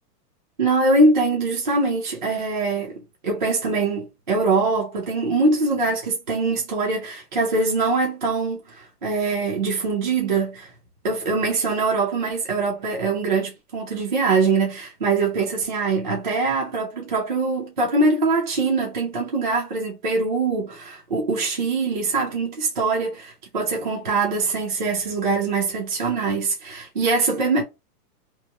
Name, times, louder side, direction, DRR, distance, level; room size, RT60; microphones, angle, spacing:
voice 1, 0.6-10.7 11.0-27.6, right 3 dB, 35° right, 0.5 m, -23 dB
2.9 x 2.1 x 3.2 m
hypercardioid pair, 170°, 48 cm